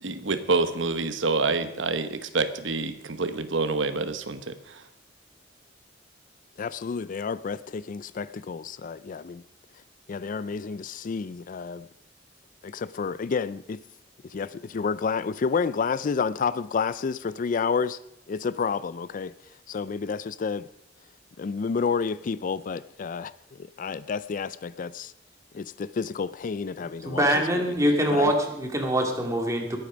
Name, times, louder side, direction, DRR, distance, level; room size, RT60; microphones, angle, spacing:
voice 1, 0.0-4.8, right 3 dB, 85° right, 1.1 m, -27 dB
voice 2, 6.6-9.4 10.1-11.9 12.6-13.8 14.2-18.0 18.3-19.3 19.7-20.7 21.4-25.1 25.5-27.3 27.5-27.8 28.1-28.3, left 5 dB, 45° left, 0.4 m, -30 dB
voice 3, 27.1-29.8, equal, 15° right, 2.4 m, -24 dB
21.0 x 8.5 x 5.1 m
head